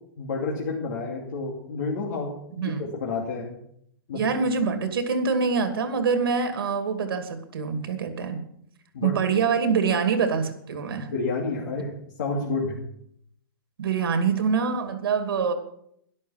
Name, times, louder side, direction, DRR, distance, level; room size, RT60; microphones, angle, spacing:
voice 1, 0.2-2.3 2.6-3.5 4.1-4.2 8.9-9.1 11.1-12.8, left 3 dB, 55° left, -2 dB, 2.6 m, -30 dB
voice 2, 2.6-2.9 4.1-8.4 9.0-11.1 13.8-15.5, right 5 dB, 80° right, 7 dB, 2.6 m, -25 dB
12.0 x 12.0 x 5.7 m, 0.72 s
hypercardioid pair, 170°, 12 cm